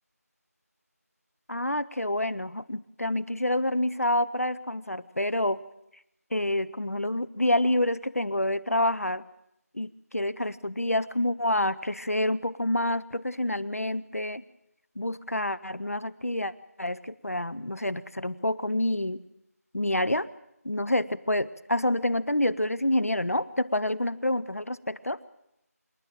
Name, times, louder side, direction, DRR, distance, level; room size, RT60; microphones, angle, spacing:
voice 1, 1.5-5.6 6.3-9.2 9.7-14.4 15.0-16.5 16.8-19.2 19.7-20.3 20.6-25.2, left 1 dB, 65° left, 16 dB, 0.8 m, -28 dB
27.0 x 11.0 x 8.9 m, 0.83 s
figure-of-eight pair, 180°, 9 cm